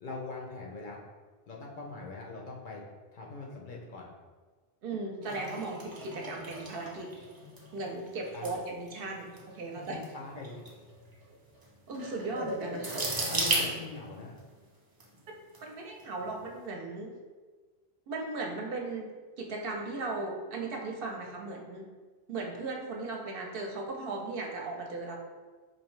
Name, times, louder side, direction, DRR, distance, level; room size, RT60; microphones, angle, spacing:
voice 1, 0.0-1.0 1.5-2.8 3.1-4.1 8.3-8.5 9.7-10.6 13.3-14.4, left 3 dB, 55° left, -1 dB, 0.7 m, -42 dB
voice 2, 4.8-7.1 7.7-10.0 11.9-13.1 15.6-17.2 18.1-19.1 19.4-21.9 22.3-25.2, right 3 dB, 65° right, 1 dB, 0.8 m, -37 dB
sound 1, 5.2-14.4 15.0-15.6 16.0-16.3, right 1 dB, 30° right, 0.4 m, -36 dB
4.3 x 2.6 x 3.1 m, 1.4 s
omnidirectional pair, 1.1 m